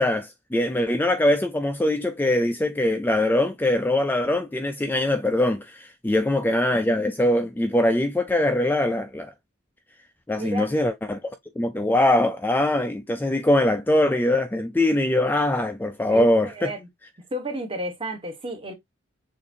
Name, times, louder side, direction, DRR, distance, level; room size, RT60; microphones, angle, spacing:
voice 1, 0.0-9.3 10.3-11.2 11.6-16.7, left 1 dB, 10° left, 0.3 m, -22 dB
voice 2, 6.1-6.5 10.4-10.7 16.1-16.9 17.3-18.7, right 1 dB, 25° right, 1.1 m, -32 dB
6.6 x 2.5 x 2.7 m
head